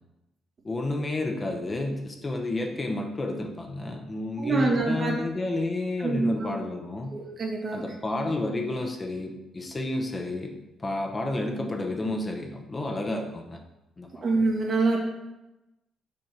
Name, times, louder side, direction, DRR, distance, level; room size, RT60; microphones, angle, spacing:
voice 1, 0.6-7.2 7.7-10.5 10.8-13.6 14.0-14.2, left 2 dB, 25° left, 2 dB, 0.8 m, -31 dB
voice 2, 4.4-5.1 6.0-6.5 7.1-7.8 14.2-15.0, right 3 dB, 45° right, 0 dB, 1.5 m, -25 dB
5.4 x 3.6 x 5.8 m, 0.98 s
cardioid pair, 90°, 0 cm